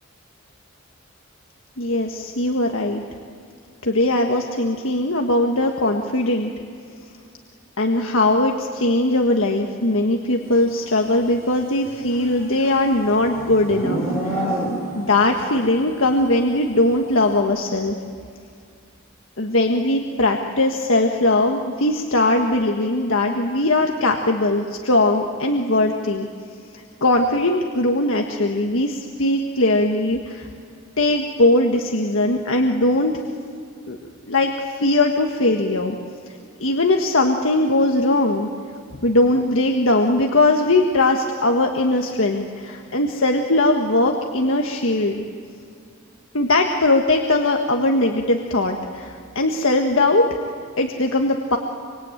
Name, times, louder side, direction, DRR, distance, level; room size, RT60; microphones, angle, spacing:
voice 1, 1.8-3.0 3.8-6.5 7.8-14.5 15.0-18.0 19.4-26.3 27.0-30.5 31.0-33.2 33.9-34.0 34.3-36.0 36.6-38.5 39.0-45.2 46.3-50.3 50.8-51.6, left 2 dB, 75° left, 2 dB, 1.6 m, -20 dB
Livestock farm animals working animals, 11.9-15.1, right 1 dB, 10° right, 6.4 m, -27 dB
25.5 x 25.0 x 9.1 m, 2.3 s
head